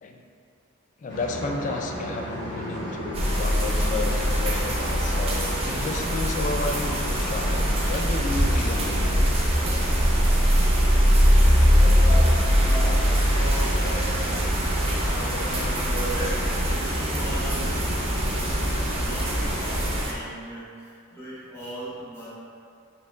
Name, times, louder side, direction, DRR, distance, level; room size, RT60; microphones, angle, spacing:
voice 1, 1.0-9.2, left 3 dB, 35° left, 3 dB, 0.3 m, -32 dB
sound 1, 1.1-20.0, equal, 55° left, 0.9 m, -34 dB
sound 2, 3.1-20.1, equal, 30° right, 0.6 m, -22 dB
voice 2, 11.6-14.7 15.0-17.8 18.9-22.3, right 1 dB, 10° left, -11 dB, 1.2 m, -37 dB
4.3 x 3.9 x 2.4 m, 2.4 s
head